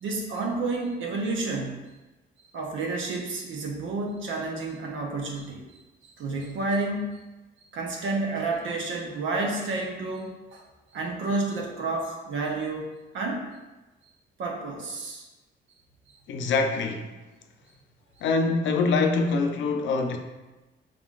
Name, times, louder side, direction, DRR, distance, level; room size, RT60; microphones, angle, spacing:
voice 1, 0.0-1.8 2.5-7.2 7.7-10.6 10.9-12.9 13.1-13.5 14.4-15.3 16.1-16.2, right 3 dB, 75° right, 1 dB, 0.9 m, -30 dB
voice 2, 16.3-17.2 18.2-20.2, left 4 dB, 70° left, 4 dB, 0.6 m, -24 dB
5.0 x 3.7 x 2.4 m, 1.1 s
cardioid pair, 90°, 20 cm